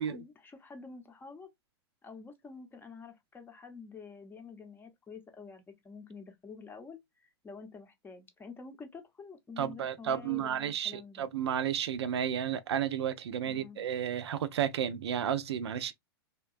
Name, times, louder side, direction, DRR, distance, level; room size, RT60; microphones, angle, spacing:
voice 1, 0.0-1.5 2.0-11.3 13.4-13.8, left 4 dB, 15° left, 0.6 m, -48 dB
voice 2, 9.6-15.9, right 9 dB, 80° right, 0.4 m, -32 dB
2.8 x 2.2 x 2.4 m
hypercardioid pair, 120°, 14 cm